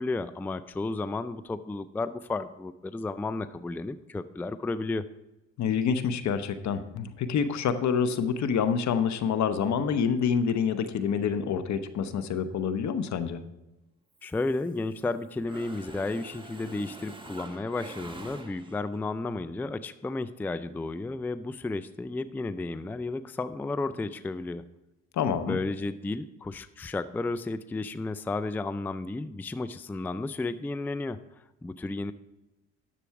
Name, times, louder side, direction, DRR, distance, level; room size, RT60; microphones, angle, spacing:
voice 1, 0.0-5.0 14.2-24.6 25.4-31.2 31.6-32.1, left 3 dB, 5° left, 13 dB, 0.3 m, -33 dB
voice 2, 5.6-13.4 25.2-25.6, left 7 dB, 65° left, 11 dB, 0.9 m, -27 dB
Mechanisms, 14.2-15.1 15.4-19.0, right 2 dB, 15° right, 1.1 m, -45 dB
10.5 x 6.9 x 4.7 m, 0.98 s
cardioid pair, 90°, 30 cm